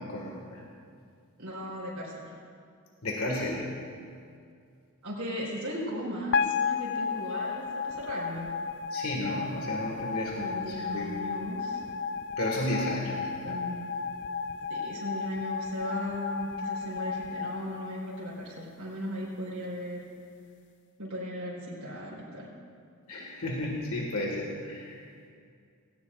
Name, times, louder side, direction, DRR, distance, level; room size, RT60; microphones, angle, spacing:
voice 1, 0.1-0.6 3.0-3.6 8.9-11.3 12.4-13.2 13.4-13.6 23.1-25.0, left 1 dB, 80° left, -1 dB, 1.8 m, -33 dB
voice 2, 1.4-2.4 5.0-8.5 10.4-11.8 13.4-14.0 14.7-20.1 21.0-22.5, equal, 75° right, -7 dB, 3.9 m, -37 dB
sound 1, 6.3-18.6, left 5 dB, 50° left, 0.3 m, -33 dB
18.0 x 18.0 x 2.5 m, 2.3 s
head